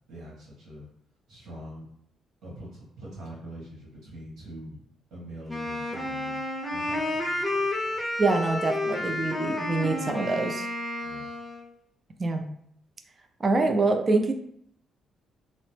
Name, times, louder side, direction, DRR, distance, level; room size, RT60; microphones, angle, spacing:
voice 1, 0.1-0.9 1.3-1.9 2.4-4.8 5.1-6.4 6.7-8.0 11.0-11.3, equal, 80° right, -5 dB, 1.5 m, -43 dB
Wind instrument woodwind instrument, 5.5-11.7, left 1 dB, 5° left, 0.6 m, -31 dB
voice 2, 8.2-10.7 12.2-12.4 13.4-14.3, right 3 dB, 35° right, 5 dB, 0.4 m, -25 dB
2.9 x 2.0 x 3.2 m, 0.69 s
cardioid pair, 90°, 0 cm